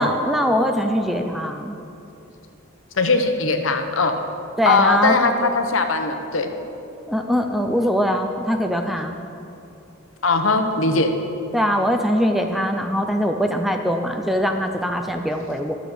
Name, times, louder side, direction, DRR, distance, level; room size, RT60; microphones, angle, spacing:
voice 1, 0.0-1.8 4.6-5.2 7.1-9.2 11.5-15.7, equal, ahead, 4 dB, 0.4 m, -22 dB
voice 2, 3.0-4.2 4.7-6.5 10.2-11.1, left 3 dB, 75° left, 6 dB, 0.9 m, -20 dB
12.0 x 7.0 x 6.0 m, 2.8 s
head